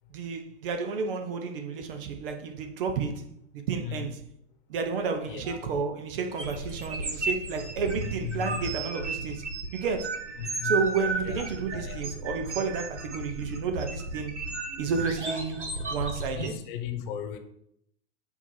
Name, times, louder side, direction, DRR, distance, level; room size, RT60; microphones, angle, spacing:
voice 1, 0.1-4.2 4.7-9.4 9.7-10.3 10.6-14.3 14.8-16.5, right 5 dB, 50° right, 1.0 m, -31 dB
voice 2, 3.8-4.1 5.2-5.6 8.0-8.6 10.4-10.8 11.2-12.0 16.3-17.4, left 8 dB, 45° left, 1.1 m, -37 dB
sound 1, 6.4-16.5, right 3 dB, 85° right, 1.3 m, -34 dB
8.3 x 2.9 x 5.6 m
figure-of-eight pair, 100°, 34 cm